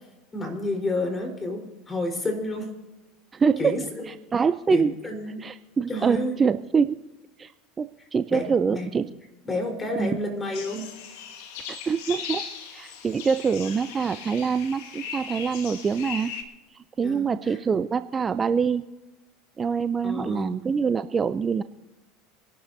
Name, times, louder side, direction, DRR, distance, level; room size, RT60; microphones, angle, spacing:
voice 1, 0.3-2.7 3.6-4.1 4.7-5.4 5.9-6.3 8.3-8.9 9.4-10.9 17.0-17.6 20.0-20.5, left 1 dB, 20° left, 2 dB, 4.2 m, -30 dB
voice 2, 3.3-3.8 4.1-4.9 5.4-7.0 7.4-7.5 7.8-9.0 10.0-10.2 11.7-12.5 12.7-16.3 16.7-18.8 19.6-21.6, right 6 dB, 25° right, 12 dB, 0.5 m, -25 dB
sound 1, 10.5-16.4, left 7 dB, 70° left, 1.9 m, -38 dB
26.0 x 11.5 x 2.7 m, 1.1 s
hypercardioid pair, 90°, 0 cm